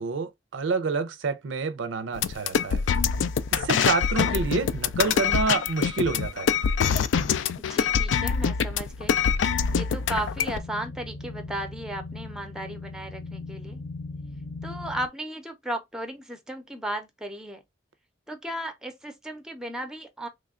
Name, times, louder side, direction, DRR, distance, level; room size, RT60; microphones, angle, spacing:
voice 1, 0.0-2.8 3.5-6.5, right 4 dB, 85° right, 0.5 m, -28 dB
sound 1, 2.2-10.6, left 7 dB, 80° left, 0.3 m, -25 dB
voice 2, 7.7-9.1 9.7-13.8 14.6-17.6 18.3-20.3, right 1 dB, 5° right, 0.5 m, -35 dB
sound 2, 9.0-15.1, left 3 dB, 60° left, 0.7 m, -39 dB
3.2 x 2.3 x 3.6 m
head